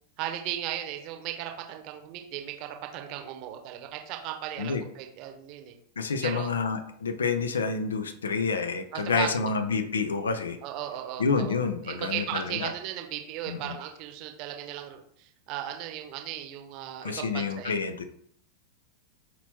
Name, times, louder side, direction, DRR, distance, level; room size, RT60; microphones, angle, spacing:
voice 1, 0.2-5.7 6.2-6.5 8.9-9.5 10.6-11.5 11.8-17.7, right 11 dB, 40° right, 4 dB, 0.8 m, -36 dB
voice 2, 6.0-10.6 11.2-12.7 13.5-13.7 17.0-18.1, left 4 dB, 70° left, 8 dB, 0.5 m, -28 dB
4.5 x 4.1 x 2.8 m, 0.64 s
figure-of-eight pair, 90°, 0 cm